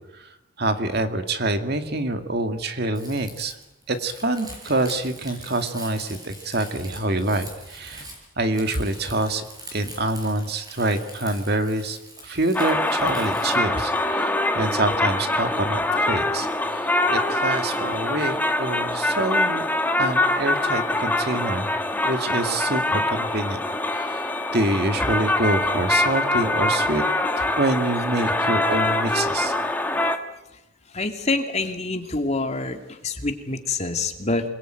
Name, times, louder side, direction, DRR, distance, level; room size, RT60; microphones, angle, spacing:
voice 1, 0.6-3.5 3.9-8.1 8.4-9.4 9.7-12.0 12.2-19.7 20.0-21.7 22.0-23.6 23.9-27.0 27.4-29.5, right 2 dB, 50° right, 7 dB, 2.1 m, -26 dB
Crumpling crinkling, 2.9-13.5, right 1 dB, 20° right, 7.1 m, -43 dB
sound 1, 12.5-30.2, left 2 dB, 10° left, 1.5 m, -24 dB
voice 2, 30.9-34.4, left 3 dB, 30° left, 5 dB, 2.5 m, -26 dB
27.5 x 21.5 x 9.2 m, 0.91 s
head